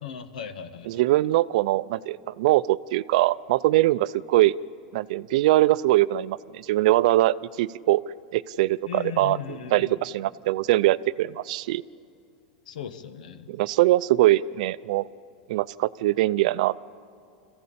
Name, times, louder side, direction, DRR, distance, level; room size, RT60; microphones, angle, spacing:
voice 1, 0.0-1.0 8.9-10.0 12.7-13.5, left 8 dB, 90° left, 10 dB, 1.4 m, -37 dB
voice 2, 0.9-4.5 4.9-8.0 8.3-11.8 13.5-15.1 15.5-16.8, right 16 dB, 65° right, 17 dB, 0.5 m, -22 dB
25.5 x 15.0 x 8.6 m, 2.4 s
supercardioid pair, 135°, 4 cm